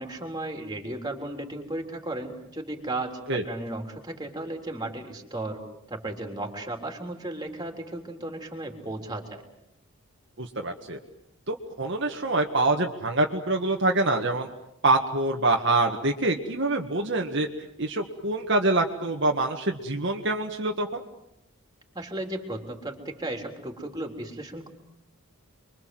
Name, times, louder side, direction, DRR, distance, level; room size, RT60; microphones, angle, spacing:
voice 1, 0.0-5.6 5.9-9.4 21.9-24.7, right 2 dB, 20° right, 4 dB, 3.7 m, -35 dB
voice 2, 10.4-11.0 11.5-14.5 14.8-17.5 17.8-21.0, right 2 dB, 55° right, 2 dB, 1.8 m, -25 dB
28.5 x 23.5 x 7.8 m, 0.83 s
head